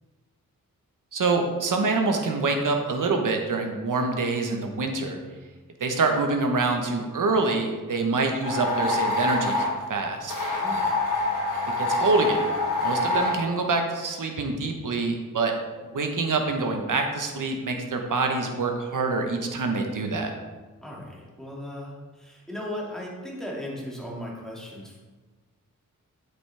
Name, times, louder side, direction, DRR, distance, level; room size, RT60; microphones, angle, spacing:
voice 1, 1.1-5.2 5.8-10.3 11.8-12.4 12.8-15.5 15.9-20.3, right 3 dB, 70° right, 3 dB, 1.2 m, -26 dB
sound 1, 8.4-9.7 10.3-13.4, left 2 dB, 70° left, 2.6 m, -25 dB
voice 2, 10.6-11.1 20.8-25.0, left 1 dB, ahead, -4 dB, 2.4 m, -37 dB
8.3 x 8.2 x 3.5 m, 1.3 s
wide cardioid pair, 90°, 33 cm